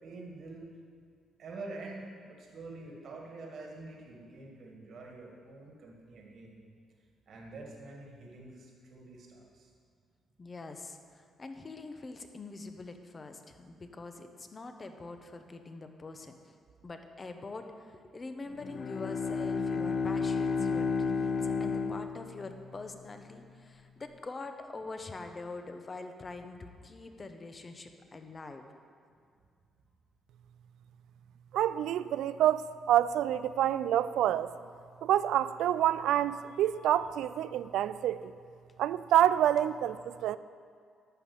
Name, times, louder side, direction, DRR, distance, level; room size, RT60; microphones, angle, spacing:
voice 1, 0.0-0.7 1.4-6.6 7.3-9.7, right 2 dB, 60° right, -1 dB, 1.9 m, -46 dB
voice 2, 10.4-16.3 16.8-28.6, left 3 dB, 30° left, 6 dB, 0.9 m, -44 dB
Bowed string instrument, 18.5-22.9, left 5 dB, 50° left, 0.6 m, -32 dB
voice 3, 31.5-34.5 35.0-38.3 38.8-40.4, right 11 dB, 85° right, 15 dB, 0.3 m, -27 dB
11.5 x 5.5 x 8.4 m, 2.2 s
cardioid pair, 90°, 0 cm